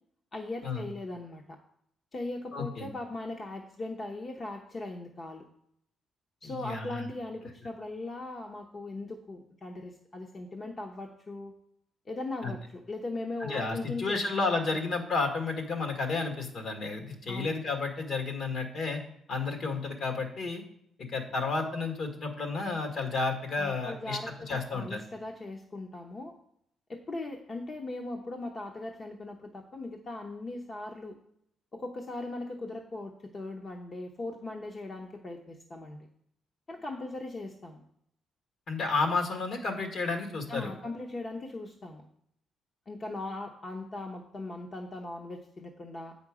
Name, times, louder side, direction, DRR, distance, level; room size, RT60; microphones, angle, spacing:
voice 1, 0.3-1.6 2.1-5.4 6.4-11.5 12.1-14.5 17.3-17.6 23.5-26.3 26.9-31.2 31.7-36.1 36.7-37.8 40.5-42.0 42.9-46.2, left 2 dB, 40° left, 2 dB, 0.9 m, -39 dB
voice 2, 2.5-2.9 6.4-7.1 12.4-12.5 13.4-19.0 19.3-20.6 21.0-24.2 24.5-25.0 38.7-40.7, left 4 dB, 60° left, 4 dB, 1.6 m, -31 dB
8.2 x 5.2 x 4.9 m, 0.73 s
cardioid pair, 90°, 0 cm